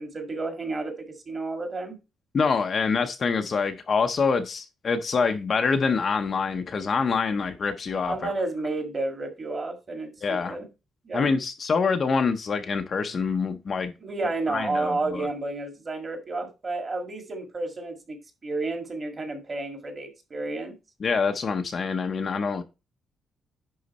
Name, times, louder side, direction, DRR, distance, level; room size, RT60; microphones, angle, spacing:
voice 1, 0.0-2.0 8.1-10.7 11.0-11.3 14.0-18.2 18.4-20.7, right 2 dB, 25° right, 5 dB, 1.8 m, -31 dB
voice 2, 2.3-8.3 10.2-10.6 11.1-13.9 14.5-15.3 21.0-22.6, left 5 dB, 30° left, 6 dB, 0.6 m, -25 dB
10.5 x 3.8 x 4.1 m, 0.27 s
cardioid pair, 180°, 0 cm